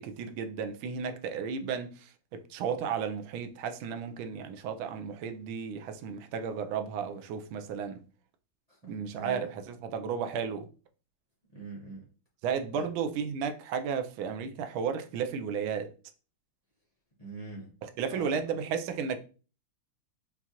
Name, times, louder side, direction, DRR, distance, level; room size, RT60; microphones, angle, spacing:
voice 1, 0.0-8.0 8.8-10.7 12.4-15.9 18.0-19.2, right 6 dB, 75° right, 1.3 m, -33 dB
voice 2, 8.7-9.5 11.5-12.1 12.7-12.9 17.2-17.7 18.1-18.6, right 2 dB, 65° left, 0.3 m, -44 dB
5.5 x 2.4 x 2.8 m
omnidirectional pair, 2.4 m